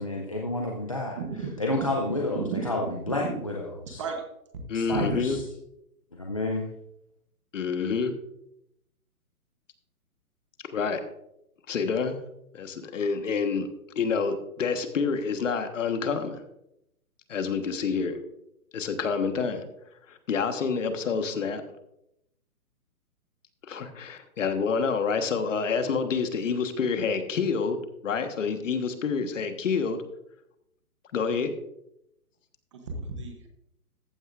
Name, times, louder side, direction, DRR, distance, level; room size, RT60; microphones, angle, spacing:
voice 1, 0.0-1.2 1.6-4.0 4.7-5.4 6.1-6.7, left 2 dB, 25° left, 0 dB, 0.5 m, -30 dB
voice 2, 1.2-1.5 2.3-2.6 3.1-3.4 4.0-4.3 4.9-5.2 32.7-33.5, right 5 dB, 20° right, 4 dB, 0.8 m, -33 dB
voice 3, 4.7-5.4 7.5-8.1 10.7-11.0 11.7-12.2 12.5-13.7 13.9-16.4 17.3-18.2 18.7-19.6 20.1-21.6 23.7-27.8 28.0-30.0 31.1-31.5, left 5 dB, 55° left, 8 dB, 1.4 m, -28 dB
14.5 x 9.2 x 2.5 m, 0.80 s
hypercardioid pair, 160°, 45 cm